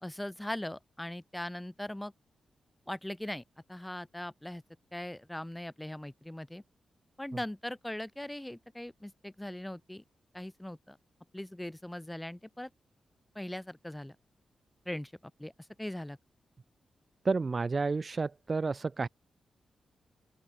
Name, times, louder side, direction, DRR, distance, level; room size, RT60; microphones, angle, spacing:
voice 1, 0.0-2.1 2.9-3.4 3.7-4.6 4.9-6.6 7.2-10.0 10.3-11.0 11.3-12.7 13.3-14.2 14.9-15.1 15.4-15.5 15.8-16.2, left 1 dB, 10° left, 2.2 m, -40 dB
voice 2, 17.2-19.1, right 4 dB, 40° right, 1.0 m, -30 dB
open air
cardioid pair, 80°, 0 cm